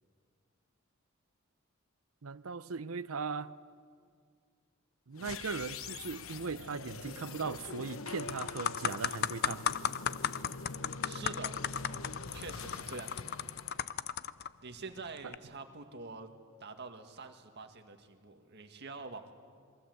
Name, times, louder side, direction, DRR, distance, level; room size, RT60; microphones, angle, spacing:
voice 1, 2.2-3.5 5.1-9.7, right 5 dB, 85° right, 15 dB, 0.7 m, -38 dB
sound 1, 5.1-14.4, left 4 dB, 70° left, 1.0 m, -45 dB
sound 2, 7.5-7.7 8.1-14.5 15.2-15.4, left 9 dB, 50° left, 0.6 m, -35 dB
voice 2, 11.0-11.6 12.3-13.3 14.6-16.3 16.6-19.3, right 4 dB, 55° right, 5 dB, 2.0 m, -46 dB
28.0 x 23.0 x 8.0 m, 2.1 s
head